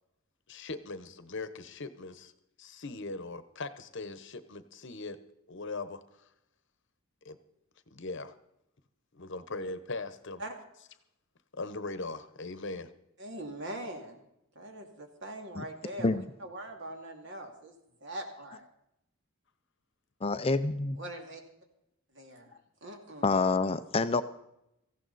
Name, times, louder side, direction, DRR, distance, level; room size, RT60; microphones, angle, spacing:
voice 1, 0.5-2.3 2.6-5.2 5.5-6.0 7.2-7.4 7.9-8.4 9.1-10.4 11.5-12.9, left 3 dB, 55° left, 12 dB, 1.0 m, -40 dB
voice 2, 13.2-14.2 14.5-17.7 18.0-18.7 21.0-21.4 22.1-23.3, right 1 dB, 55° right, 3 dB, 2.5 m, -42 dB
voice 3, 20.2-21.0 23.2-24.2, left 3 dB, 25° left, 11 dB, 0.5 m, -27 dB
17.5 x 15.0 x 4.1 m, 0.82 s
head